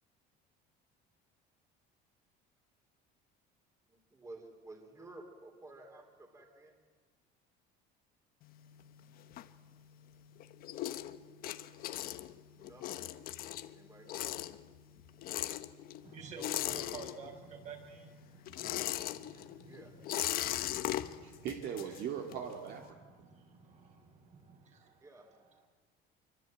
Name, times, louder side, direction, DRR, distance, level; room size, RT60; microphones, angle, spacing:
voice 1, 4.1-6.7 12.6-12.8 13.7-14.2 19.6-19.9 25.0-25.2, right 2 dB, 15° right, 3 dB, 3.8 m, -52 dB
sound 1, 8.4-10.0 10.4-17.6 17.8-22.5, left 13 dB, 50° left, 1.2 m, -39 dB
voice 2, 16.0-21.5 21.9-22.3 22.9-25.7, right 4 dB, 40° right, 4 dB, 5.5 m, -52 dB
voice 3, 21.2-23.1, right 8 dB, 55° right, 3 dB, 2.3 m, -40 dB
26.0 x 24.5 x 9.1 m, 1.4 s
cardioid pair, 155°, 19 cm